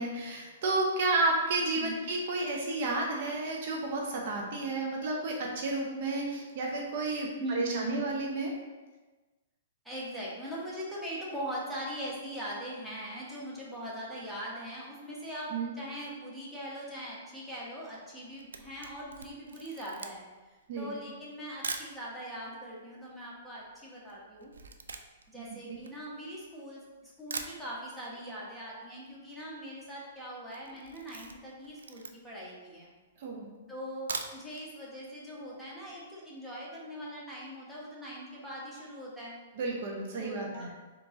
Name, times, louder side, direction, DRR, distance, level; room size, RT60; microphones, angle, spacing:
voice 1, 0.0-8.5 15.5-15.7 20.7-20.9 25.3-25.8 33.2-33.5 39.6-40.7, right 2 dB, 55° right, 0 dB, 0.7 m, -32 dB
voice 2, 1.7-2.1 7.4-8.1 9.8-20.2 20.8-24.5 25.3-32.9 33.7-39.4 40.2-40.7, equal, 5° right, -7 dB, 1.2 m, -41 dB
Camera, 18.1-22.0 22.7-22.8 22.9-26.6 27.0-27.1 27.3-28.2 28.4-28.5 28.8-28.9 29.1-29.5 29.9-30.1 30.5-32.5 33.0-33.1 33.9-34.7 35.0-35.1 35.5-35.6, right 4 dB, 85° right, 0.3 m, -42 dB
3.7 x 3.0 x 3.7 m, 1.2 s
hypercardioid pair, 125°, 0 cm